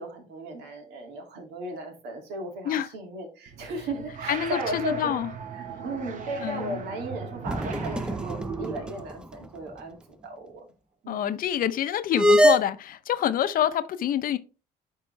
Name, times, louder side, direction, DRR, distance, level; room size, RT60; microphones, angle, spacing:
voice 1, 0.0-5.2 5.5-10.7 11.0-11.3, right 1 dB, 85° right, 2.1 m, -36 dB
sound 1, 3.5-9.0, right 6 dB, 50° right, 1.0 m, -38 dB
voice 2, 4.3-5.3 6.4-6.8 11.1-14.4, left 10 dB, 55° left, 0.6 m, -26 dB
sound 2, 7.5-9.2 9.4-9.5 12.1-12.6, equal, 5° right, 0.5 m, -22 dB
10.5 x 3.8 x 3.2 m
cardioid pair, 110°, 17 cm